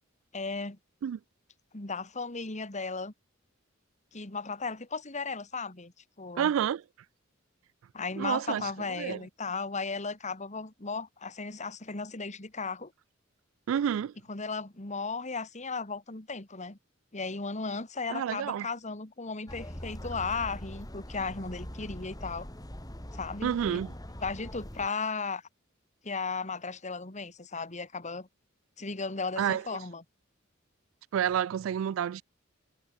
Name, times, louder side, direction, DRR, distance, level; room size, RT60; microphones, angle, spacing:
voice 1, 0.3-0.8 1.7-3.1 4.1-5.9 6.2-6.5 7.9-12.9 14.3-16.8 17.1-22.5 23.1-23.8 24.2-25.4 26.0-28.3 28.8-30.0, left 4 dB, 35° left, 2.4 m, -35 dB
voice 2, 6.4-6.8 8.2-9.2 13.7-14.1 18.1-18.7 23.4-23.9 29.4-29.6 31.1-32.2, right 9 dB, 75° right, 0.3 m, -29 dB
sound 1, 19.5-24.9, equal, 20° left, 3.5 m, -42 dB
head